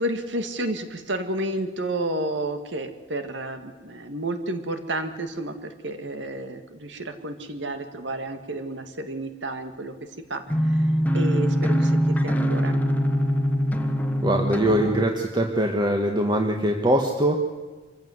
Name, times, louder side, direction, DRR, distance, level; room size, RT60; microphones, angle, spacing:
voice 1, 0.0-9.9 10.3-12.8, right 1 dB, 75° right, 8 dB, 2.2 m, -31 dB
sound 1, 10.5-15.0, equal, 10° left, 1.3 m, -23 dB
voice 2, 14.2-17.4, right 1 dB, 25° right, 2 dB, 1.6 m, -22 dB
25.5 x 15.5 x 8.0 m, 1.4 s
head